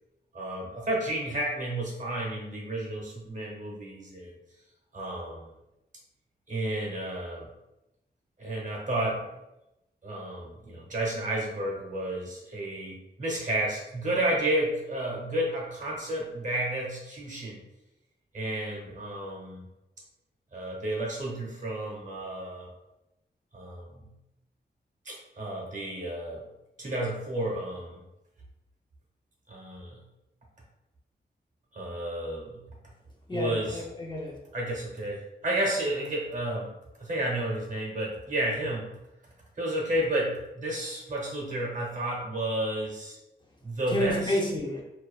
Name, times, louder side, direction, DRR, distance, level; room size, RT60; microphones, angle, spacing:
voice 1, 0.3-4.3 4.9-5.5 6.5-7.5 8.4-9.2 10.0-17.6 18.3-19.6 20.5-22.7 23.5-24.1 25.0-26.4 26.8-28.0 29.5-30.0 31.7-32.6 33.3-33.8 34.5-36.7 37.0-38.9 39.6-43.2 43.6-44.4, right 1 dB, 45° right, -2 dB, 0.7 m, -31 dB
voice 2, 33.3-34.4 43.9-44.8, left 1 dB, 25° left, -3 dB, 0.4 m, -30 dB
2.5 x 2.2 x 2.3 m, 0.94 s
wide cardioid pair, 160°, 18 cm